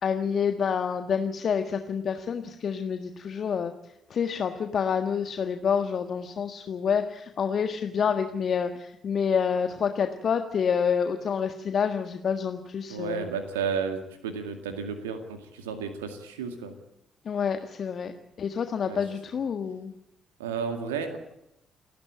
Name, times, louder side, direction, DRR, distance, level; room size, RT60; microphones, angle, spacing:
voice 1, 0.0-3.7 4.1-13.3 17.2-18.1 18.4-19.9, left 7 dB, 50° left, 8 dB, 1.6 m, -28 dB
voice 2, 12.9-16.7 18.9-19.0 20.4-21.2, right 6 dB, 85° right, 7 dB, 2.1 m, -32 dB
29.0 x 12.5 x 8.8 m, 0.83 s
hypercardioid pair, 45°, 0 cm